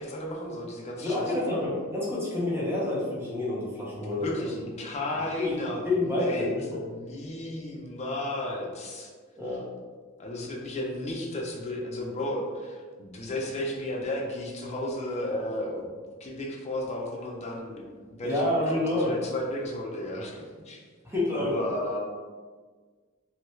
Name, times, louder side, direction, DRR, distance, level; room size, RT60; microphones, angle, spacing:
voice 1, 0.0-1.6 3.9-5.9 6.2-9.1 10.2-20.8 21.3-22.0, left 1 dB, 30° left, -1 dB, 0.5 m, -34 dB
voice 2, 1.0-4.5 5.4-5.5 5.8-6.8 9.3-9.6 18.2-19.1 21.0-21.5, left 2 dB, 10° right, -7 dB, 0.9 m, -28 dB
3.1 x 2.3 x 3.1 m, 1.5 s
head